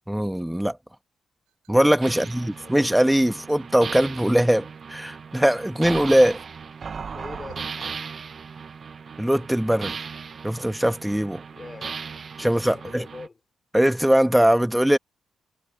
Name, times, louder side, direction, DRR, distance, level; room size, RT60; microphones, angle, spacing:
voice 1, 0.1-0.8 1.7-6.4 9.2-9.9 10.4-11.4 12.4-13.0 13.7-15.0, equal, 5° right, 1.8 m, -21 dB
sound 1, 1.4-1.8 3.3-3.7 4.5-4.6 5.4-5.7 6.0-6.1 7.5-7.8, right 22 dB, 85° right, 5.5 m, -53 dB
sound 2, 2.0-13.3, right 6 dB, 50° right, 1.2 m, -37 dB
voice 2, 2.1-2.8 7.1-8.0 11.5-12.0 12.4-13.4, left 3 dB, 35° left, 4.8 m, -42 dB
hypercardioid pair, 45°, 0 cm